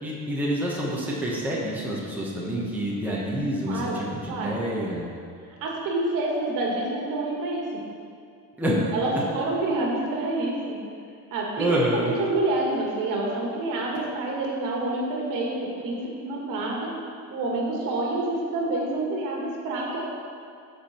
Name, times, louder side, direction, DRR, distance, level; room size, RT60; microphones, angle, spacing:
voice 1, 0.0-5.0 8.6-8.8 9.1-9.2 11.6-12.1, equal, 5° right, -5 dB, 1.2 m, -27 dB
voice 2, 3.7-4.0 4.3-4.6 5.6-7.7 8.9-10.8 11.3-16.9 17.3-20.0, right 2 dB, 65° right, -2 dB, 2.0 m, -28 dB
12.5 x 5.1 x 4.5 m, 2.4 s
cardioid pair, 150°, 35 cm